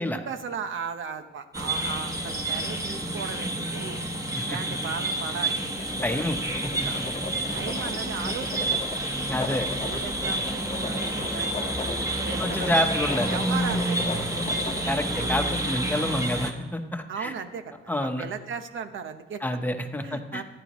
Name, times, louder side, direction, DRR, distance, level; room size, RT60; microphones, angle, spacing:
voice 1, 0.0-4.0 4.4-6.3 6.7-7.1 7.5-8.9 9.8-11.7 12.2-12.8 13.3-14.4 15.9-16.1 17.1-17.7 18.0-19.4 20.0-20.4, right 6 dB, 75° right, 8 dB, 1.0 m, -36 dB
sound 1, 1.5-16.5, right 1 dB, 15° right, 1.3 m, -29 dB
Writing, 5.8-15.2, left 3 dB, 25° left, 1.3 m, -37 dB
voice 2, 6.0-6.4 6.6-6.9 9.3-9.7 12.4-13.4 14.9-17.3 17.9-18.3 19.4-20.4, left 1 dB, 10° left, 5 dB, 1.0 m, -28 dB
26.0 x 10.0 x 3.1 m, 1.1 s
wide cardioid pair, 135°, 20 cm